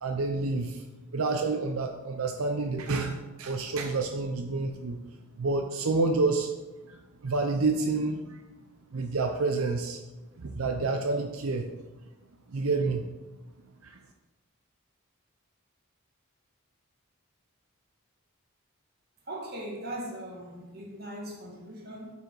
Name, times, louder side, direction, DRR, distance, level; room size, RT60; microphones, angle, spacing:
voice 1, 0.0-0.8 1.1-5.0 5.4-6.5 6.9-8.4 8.9-10.0 10.4-11.6 12.5-13.0 13.8-14.0, right 3 dB, 90° right, 5 dB, 0.6 m, -29 dB
voice 2, 19.3-22.1, right 1 dB, 50° right, 0 dB, 1.8 m, -39 dB
7.8 x 5.8 x 4.6 m, 1.1 s
head